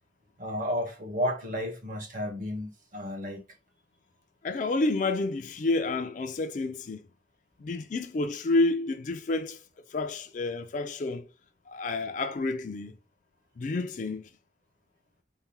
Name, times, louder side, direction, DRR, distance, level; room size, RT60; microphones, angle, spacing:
voice 1, 0.4-3.4, equal, 45° right, 0.9 m, -32 dB
voice 2, 4.4-7.0 7.6-9.6 9.9-11.2 11.7-13.0 13.6-14.3, left 2 dB, 45° left, 0.4 m, -29 dB
4.2 x 2.1 x 3.4 m
head